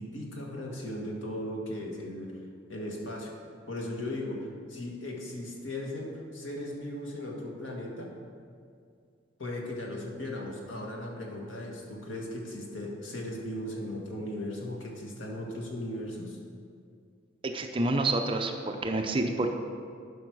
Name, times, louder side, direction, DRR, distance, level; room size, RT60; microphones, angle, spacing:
voice 1, 0.0-2.3 2.7-3.3 3.7-4.4 4.7-8.1 9.4-16.4, left 1 dB, 80° left, -1 dB, 1.6 m, -37 dB
voice 2, 17.4-19.6, right 2 dB, 25° right, 4 dB, 0.5 m, -28 dB
11.5 x 5.3 x 4.8 m, 2.3 s
head